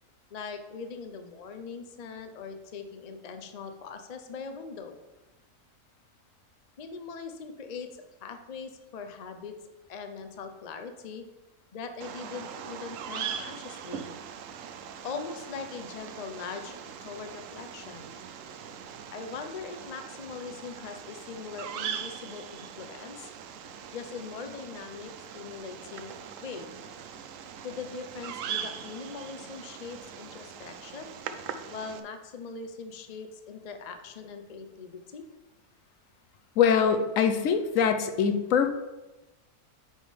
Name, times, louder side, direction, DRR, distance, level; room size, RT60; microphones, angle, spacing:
voice 1, 0.3-5.0 6.8-9.5 9.9-11.3 11.7-14.1 15.0-18.1 19.1-23.3 23.9-26.1 26.4-26.7 27.6-31.1 31.7-35.2, left 5 dB, 50° left, 7 dB, 0.4 m, -41 dB
Bird vocalization bird call bird song, 12.0-32.0, right 8 dB, 65° right, 0.9 m, -41 dB
voice 2, 36.6-38.7, left 7 dB, 70° left, 8 dB, 0.9 m, -23 dB
9.3 x 3.7 x 5.0 m, 1.1 s
omnidirectional pair, 1.6 m